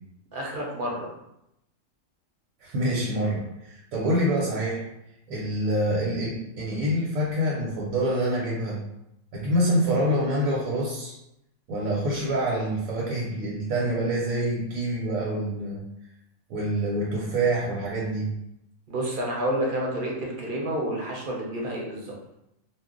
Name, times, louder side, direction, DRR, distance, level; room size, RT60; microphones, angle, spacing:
voice 1, 0.3-1.1 18.9-22.1, right 1 dB, 50° right, -2 dB, 0.7 m, -29 dB
voice 2, 2.6-4.8 5.3-8.8 9.3-11.1 11.7-15.8 16.5-18.3, right 1 dB, 85° right, -4 dB, 1.1 m, -26 dB
2.4 x 2.0 x 3.7 m, 0.84 s
omnidirectional pair, 1.4 m